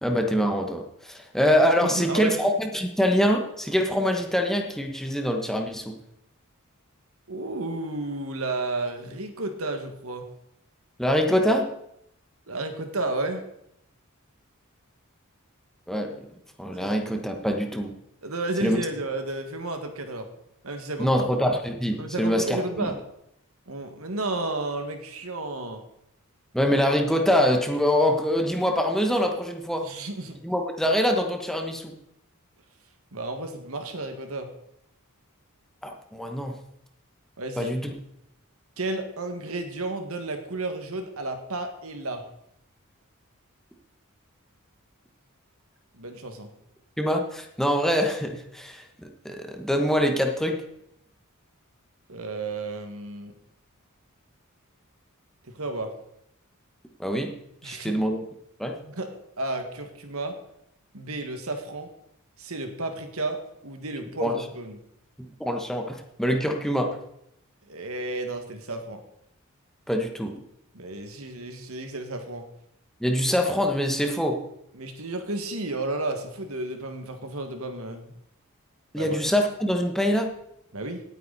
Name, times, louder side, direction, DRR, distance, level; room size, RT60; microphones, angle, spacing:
voice 1, 0.0-6.0 11.0-11.7 15.9-16.3 16.6-18.0 18.6-18.8 21.0-22.9 26.5-29.9 30.4-31.9 35.8-36.6 37.6-37.9 47.0-50.6 57.0-57.3 57.6-58.2 58.6-58.8 64.2-64.4 65.2-67.0 69.9-70.4 73.0-74.4 78.9-80.3, equal, ahead, 3 dB, 1.2 m, -24 dB
voice 2, 1.8-2.4 7.3-10.3 12.5-13.4 16.8-16.9 18.2-20.3 20.6-21.3 22.0-23.0 23.7-25.8 29.8-30.4 33.1-34.5 37.4-37.7 38.8-42.2 45.9-46.5 52.1-53.3 55.5-55.9 57.6-58.0 58.8-60.4 60.9-61.9 62.4-64.8 67.7-69.0 70.7-72.5 74.7-78.1 79.0-79.2 80.7-81.0, right 2 dB, 70° right, 6 dB, 1.9 m, -32 dB
18.0 x 9.2 x 4.2 m, 0.78 s
head